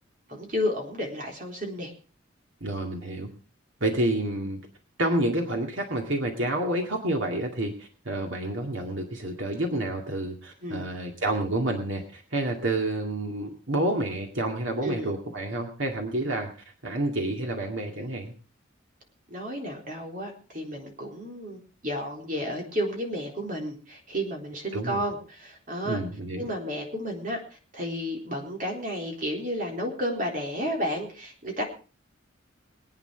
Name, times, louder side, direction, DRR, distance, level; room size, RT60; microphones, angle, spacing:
voice 1, 0.3-1.9 10.6-10.9 14.8-15.1 19.3-26.0 26.4-31.6, equal, 40° right, 1 dB, 3.9 m, -32 dB
voice 2, 2.6-3.3 3.8-4.6 5.0-16.5 16.8-18.3 24.7-25.0 25.9-26.5, right 1 dB, 70° right, 2 dB, 2.2 m, -29 dB
22.5 x 9.1 x 4.6 m, 0.37 s
head